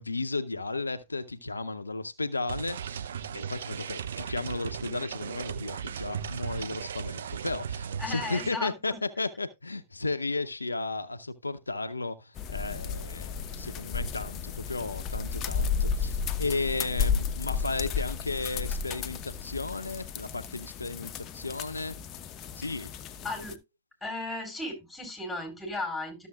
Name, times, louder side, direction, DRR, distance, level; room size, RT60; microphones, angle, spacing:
voice 1, 0.0-3.1 3.3-22.0 22.5-22.9, left 3 dB, 85° left, 0.6 m, -34 dB
sound 1, 2.5-8.5, right 7 dB, 70° right, 0.6 m, -36 dB
voice 2, 8.0-9.0 23.2-23.6 24.0-26.3, left 2 dB, 5° left, 4.2 m, -35 dB
sound 2, 12.4-23.6, left 6 dB, 35° left, 0.8 m, -33 dB
13.0 x 7.0 x 2.3 m
figure-of-eight pair, 100°, 0 cm